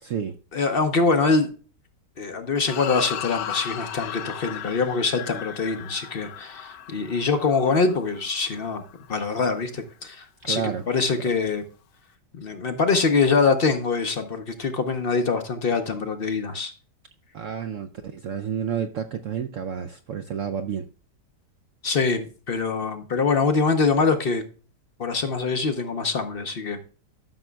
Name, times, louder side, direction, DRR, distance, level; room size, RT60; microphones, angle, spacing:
voice 1, 0.0-0.4 10.4-10.8 11.2-11.3 17.3-20.9, right 7 dB, 70° right, 0.7 m, -30 dB
voice 2, 0.5-1.5 2.2-8.8 9.1-11.6 12.4-16.7 21.8-24.4 25.0-26.8, left 4 dB, 55° left, 0.6 m, -24 dB
sound 1, 2.6-9.1, left 10 dB, 80° left, 1.3 m, -36 dB
13.0 x 6.1 x 2.2 m
omnidirectional pair, 1.8 m